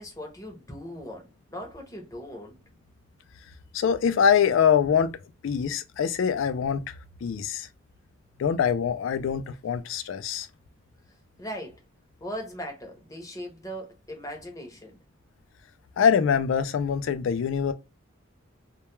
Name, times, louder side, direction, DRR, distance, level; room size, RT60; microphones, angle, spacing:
voice 1, 0.0-2.6 11.1-11.8 12.2-15.0, equal, 15° left, 0.6 m, -39 dB
voice 2, 3.7-5.1 5.4-6.9 7.2-7.7 8.4-10.5 16.0-17.7, left 7 dB, 70° left, 0.3 m, -24 dB
2.2 x 2.2 x 2.9 m
head